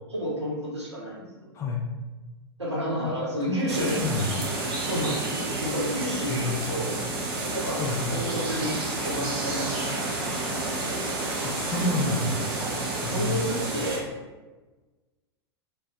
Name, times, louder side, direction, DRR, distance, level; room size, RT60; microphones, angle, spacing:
voice 1, 0.1-1.5 2.6-4.0 4.8-6.9 7.5-7.8 8.1-9.7 12.5-14.0, equal, 85° right, -6 dB, 0.9 m, -31 dB
voice 2, 1.5-1.8 3.5-3.7 4.0-4.3 6.3-6.6 7.8-8.1 11.4-12.5 13.0-13.4, left 2 dB, 20° left, 1 dB, 0.4 m, -28 dB
sound 1, 3.7-14.0, right 2 dB, 55° right, 0.6 m, -30 dB
2.4 x 2.2 x 2.5 m, 1.2 s
figure-of-eight pair, 95°, 14 cm